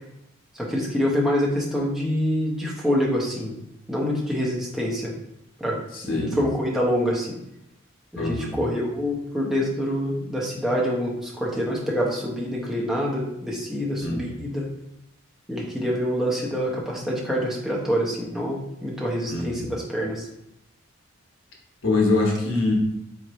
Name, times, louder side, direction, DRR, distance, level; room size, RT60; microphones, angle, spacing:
voice 1, 0.5-3.6 3.9-5.1 5.6-5.8 6.0-7.3 8.1-14.7 15.5-20.3, equal, ahead, -4 dB, 0.9 m, -26 dB
voice 2, 5.9-6.5 8.2-8.6 14.0-14.3 19.3-19.7 21.8-22.7, left 3 dB, 75° left, 0 dB, 1.2 m, -24 dB
3.6 x 3.2 x 4.2 m, 0.81 s
head